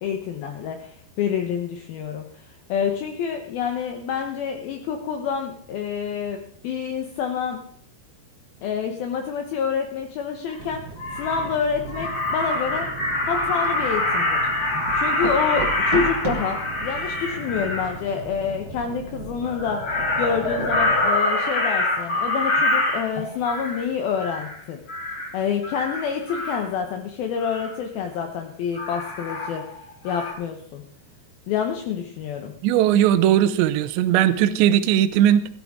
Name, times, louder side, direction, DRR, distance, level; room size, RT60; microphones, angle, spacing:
voice 1, 0.0-7.6 8.6-10.8 11.1-12.9 13.2-14.4 14.9-19.9 20.2-24.8 25.3-29.6 30.0-30.8 31.5-32.5, left 7 dB, 70° left, 4 dB, 2.5 m, -27 dB
Crow, 10.5-10.6 11.0-11.5 11.9-17.9 19.5-23.8 24.2-24.6 24.9-25.3 25.6-26.7 27.4-27.7 28.7-29.8 30.1-30.3, left 2 dB, 40° left, 3.9 m, -25 dB
sound 1, 10.6-21.1, right 6 dB, 60° right, 2.9 m, -36 dB
voice 2, 32.6-35.5, right 11 dB, 85° right, 13 dB, 3.0 m, -18 dB
17.0 x 12.5 x 3.6 m, 0.62 s
omnidirectional pair, 5.1 m